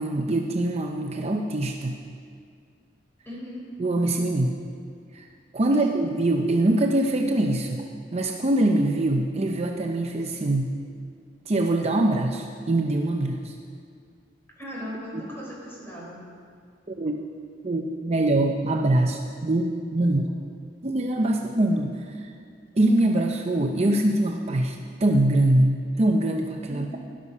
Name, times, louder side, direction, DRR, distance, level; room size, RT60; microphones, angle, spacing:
voice 1, 0.0-2.0 3.8-4.6 5.1-5.3 5.5-7.8 8.1-10.8 11.5-13.5 15.1-15.2 16.9-17.2 17.6-20.3 20.8-22.3 22.8-27.0, right 1 dB, 35° right, 2 dB, 0.6 m, -23 dB
voice 2, 3.2-3.7 14.6-16.2 26.7-26.8, equal, 15° left, -5 dB, 4.1 m, -37 dB
12.5 x 11.0 x 5.5 m, 2.2 s
head